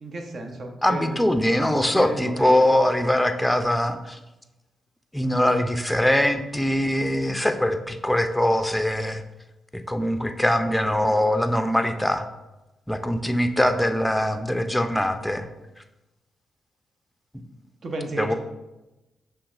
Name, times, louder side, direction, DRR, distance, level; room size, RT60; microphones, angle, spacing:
voice 1, 0.0-1.2 1.9-2.7 17.8-18.3, right 2 dB, 55° right, 3 dB, 0.8 m, -33 dB
voice 2, 0.8-4.2 5.1-9.2 9.7-12.3 12.9-15.5 18.2-18.3, left 1 dB, 5° left, 7 dB, 0.5 m, -22 dB
5.9 x 3.4 x 2.5 m, 1.0 s
hypercardioid pair, 45°, 0 cm